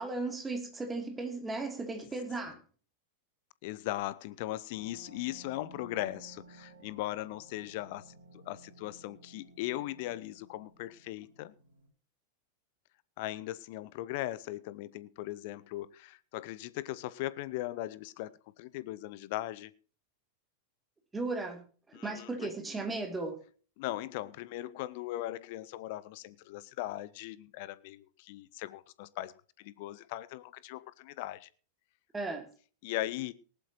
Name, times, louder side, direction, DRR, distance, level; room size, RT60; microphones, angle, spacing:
voice 1, 0.0-2.6 21.1-21.6 22.0-23.4 32.1-32.5, right 3 dB, 15° right, 3.1 m, -36 dB
voice 2, 3.6-11.5 13.2-19.7 21.9-22.5 23.8-31.5 32.8-33.3, left 15 dB, 50° left, 0.8 m, -39 dB
sound 1, 4.7-11.9, right 2 dB, 70° right, 2.8 m, -56 dB
18.5 x 11.5 x 3.0 m
figure-of-eight pair, 90°, 0 cm